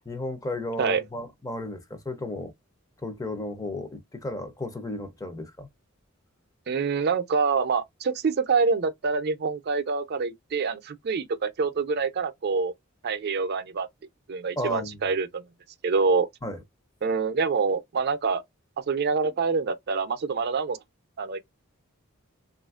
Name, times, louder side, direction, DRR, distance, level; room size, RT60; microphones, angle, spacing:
voice 1, 0.1-2.5 3.0-5.7 14.6-15.0 16.4-16.6, left 1 dB, 15° left, 0.5 m, -34 dB
voice 2, 6.7-12.7 13.0-13.9 14.3-15.4 15.8-16.3 17.0-18.4 18.9-20.8 21.2-21.4, right 5 dB, 50° right, 0.4 m, -26 dB
3.0 x 2.4 x 2.3 m
head